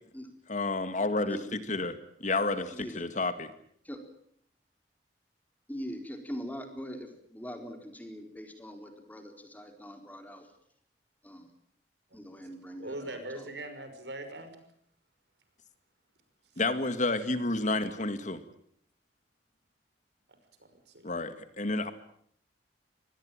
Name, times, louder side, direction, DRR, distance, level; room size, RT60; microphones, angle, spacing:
voice 1, 0.5-1.9 2.2-3.5 16.6-18.4 21.0-21.9, left 2 dB, 45° left, 10 dB, 2.1 m, -30 dB
voice 2, 2.7-3.1 3.8-4.0 5.7-10.5 11.2-11.5 12.1-13.5, equal, 10° left, 5 dB, 4.2 m, -42 dB
voice 3, 12.8-14.6 20.6-21.1 21.6-21.7, right 1 dB, 70° right, 8 dB, 5.8 m, -41 dB
24.5 x 20.0 x 9.0 m, 0.66 s
head